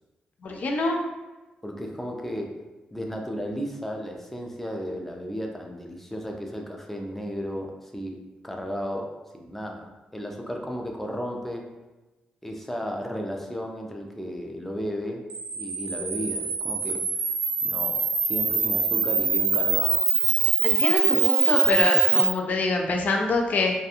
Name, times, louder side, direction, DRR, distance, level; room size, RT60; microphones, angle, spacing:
voice 1, 0.4-1.0 20.6-23.7, left 2 dB, 55° left, 2 dB, 0.5 m, -25 dB
voice 2, 1.6-2.6 2.9-11.7 12.4-15.3 15.6-17.0 17.6-20.1, equal, 10° left, 1 dB, 0.5 m, -34 dB
Camera, 15.3-22.3, right 5 dB, 55° right, 0.4 m, -23 dB
2.4 x 2.2 x 2.8 m, 1.1 s
supercardioid pair, 55°, 3 cm